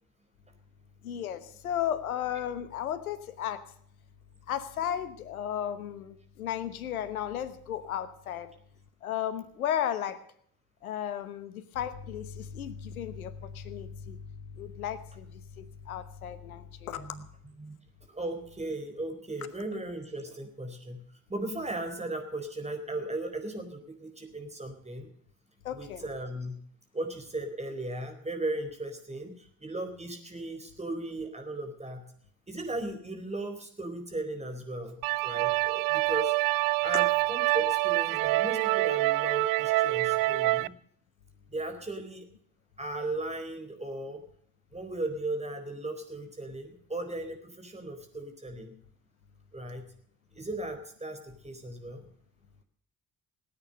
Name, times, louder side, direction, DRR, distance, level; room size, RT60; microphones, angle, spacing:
voice 1, 1.0-3.6 4.5-8.5 9.0-10.2 10.8-14.2 14.5-17.1 25.6-26.1 40.4-40.5, left 10 dB, 80° left, 14 dB, 1.1 m, -34 dB
voice 2, 18.1-21.0 21.3-25.1 25.7-26.6 26.9-32.0 32.5-36.3 36.8-40.7 41.5-42.3 42.8-44.2 44.7-48.8 49.5-49.9 50.3-52.0, right 2 dB, 15° right, 6 dB, 4.4 m, -37 dB
sound 1, 35.0-40.7, right 21 dB, 55° right, 0.6 m, -26 dB
19.0 x 9.4 x 6.6 m, 0.62 s
figure-of-eight pair, 50°, 42 cm